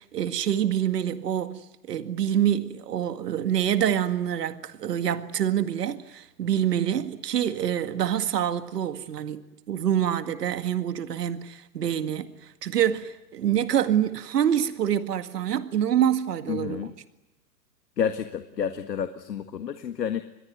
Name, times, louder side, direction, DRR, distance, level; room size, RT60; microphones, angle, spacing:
voice 1, 0.0-9.4 9.7-12.3 12.6-16.9, right 10 dB, 75° right, 2.1 m, -26 dB
voice 2, 16.5-16.9 18.0-20.2, left 8 dB, 85° left, 1.8 m, -30 dB
26.0 x 21.5 x 9.5 m
hypercardioid pair, 130°, 49 cm